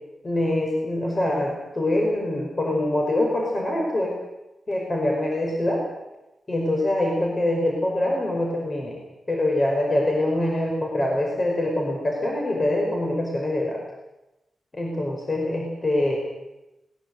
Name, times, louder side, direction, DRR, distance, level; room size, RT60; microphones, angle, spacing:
voice 1, 0.2-4.1 4.7-5.8 6.5-9.0 9.3-13.8 14.7-16.2, left 1 dB, 30° left, 0 dB, 5.1 m, -24 dB
21.0 x 19.5 x 7.8 m, 0.96 s
wide cardioid pair, 120°, 0 cm